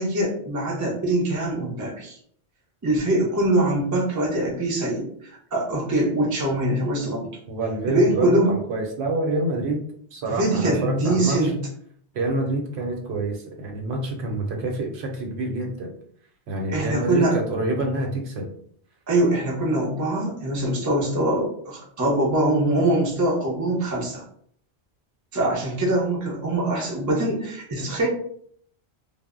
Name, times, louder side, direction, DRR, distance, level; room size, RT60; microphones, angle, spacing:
voice 1, 0.0-2.2 2.8-7.3 7.9-8.6 10.3-11.6 16.7-17.4 19.1-24.2 25.3-28.1, right 1 dB, 25° right, -3 dB, 0.4 m, -23 dB
voice 2, 7.5-9.8 10.1-11.5 12.1-15.9 16.5-18.5, right 2 dB, 75° right, 2 dB, 0.9 m, -27 dB
2.0 x 2.0 x 3.5 m, 0.63 s
omnidirectional pair, 1.1 m